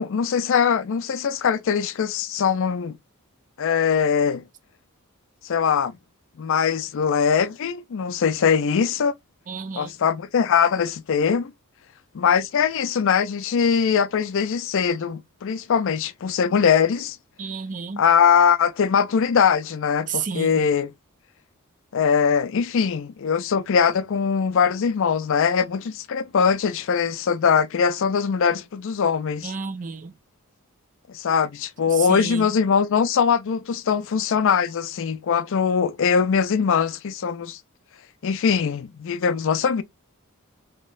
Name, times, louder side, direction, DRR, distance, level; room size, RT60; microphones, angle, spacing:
voice 1, 0.0-3.0 3.6-4.4 5.4-6.0 6.4-9.1 9.8-11.5 12.1-17.2 18.0-20.9 21.9-29.5 31.1-37.6 38.2-39.8, left 6 dB, 60° left, 0.4 m, -21 dB
voice 2, 9.5-9.9 17.4-18.0 20.1-20.6 29.4-30.1 31.9-32.5, right 5 dB, 35° right, 0.5 m, -31 dB
4.0 x 3.0 x 2.4 m
head